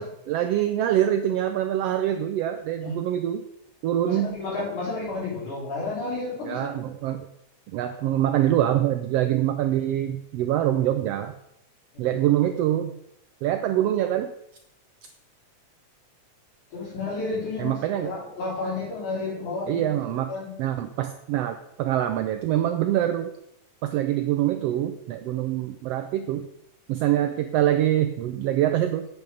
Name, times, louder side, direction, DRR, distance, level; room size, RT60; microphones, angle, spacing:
voice 1, 0.0-3.4 3.8-4.4 6.4-7.2 7.7-11.3 12.0-12.9 13.4-14.3 17.6-18.1 19.7-20.3 20.6-23.3 23.8-26.5 26.9-29.1, right 12 dB, 90° right, 8 dB, 1.4 m, -24 dB
voice 2, 4.0-6.7 11.9-12.4 16.7-20.6, left 3 dB, 90° left, -7 dB, 5.5 m, -32 dB
8.8 x 8.3 x 3.9 m, 0.77 s
omnidirectional pair, 3.4 m